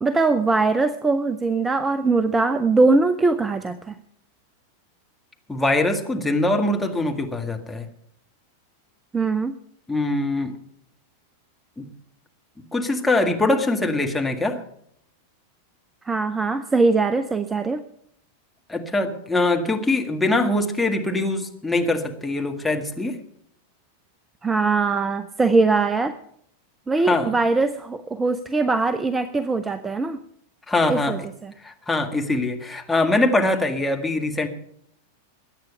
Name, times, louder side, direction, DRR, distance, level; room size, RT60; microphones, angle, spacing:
voice 1, 0.0-4.0 9.1-9.6 16.1-17.8 24.4-26.2 26.9-30.2 30.9-31.5, right 3 dB, 15° right, 12 dB, 0.7 m, -21 dB
voice 2, 5.5-7.9 9.9-10.5 11.8-11.9 12.7-14.6 18.7-23.2 27.0-27.4 30.7-31.2 31.6-34.5, left 2 dB, 5° left, 2 dB, 1.9 m, -23 dB
21.5 x 8.9 x 5.6 m, 0.70 s
figure-of-eight pair, 90°, 0 cm